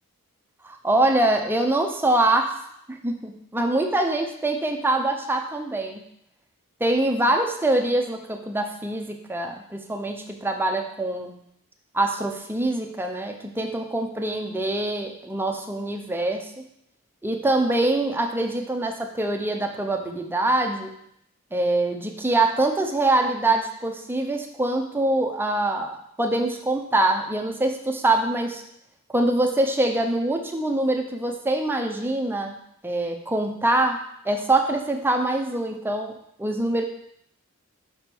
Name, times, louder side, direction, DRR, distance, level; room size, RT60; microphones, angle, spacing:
voice 1, 0.6-2.5 2.9-6.0 6.8-11.3 11.9-16.5 17.2-20.9 21.5-28.6 29.1-32.6 32.8-34.0 34.2-36.1 36.4-36.8, right 2 dB, 10° right, 3 dB, 0.5 m, -24 dB
6.0 x 3.6 x 4.4 m, 0.72 s
head